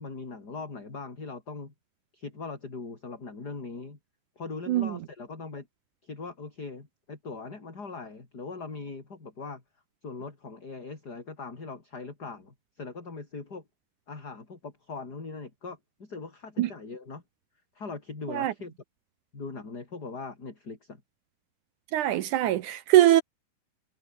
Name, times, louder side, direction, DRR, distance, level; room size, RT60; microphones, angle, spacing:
voice 1, 0.0-1.7 2.1-4.0 4.4-5.7 6.0-9.6 10.0-13.6 14.1-17.2 17.7-18.7 19.3-21.0, left 4 dB, 25° left, 4.4 m, -40 dB
voice 2, 4.7-5.0 16.6-16.7 18.3-18.5 21.9-23.2, right 13 dB, 70° right, 2.0 m, -22 dB
omnidirectional pair, 4.4 m